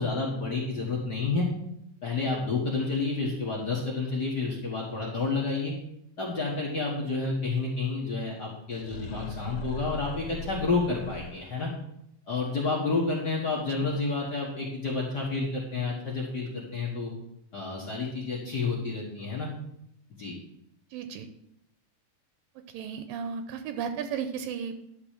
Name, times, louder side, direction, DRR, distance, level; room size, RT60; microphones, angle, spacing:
voice 1, 0.0-1.5 2.0-5.7 6.2-11.7 12.3-17.1 17.5-19.5 20.2-20.4, left 3 dB, 55° left, -4 dB, 1.2 m, -30 dB
sound 1, 8.7-11.7, left 3 dB, 80° left, 1.7 m, -40 dB
voice 2, 13.5-13.9 20.9-21.3 22.7-24.9, right 7 dB, 80° right, 9 dB, 2.3 m, -35 dB
11.5 x 3.9 x 7.4 m, 0.78 s
omnidirectional pair, 4.1 m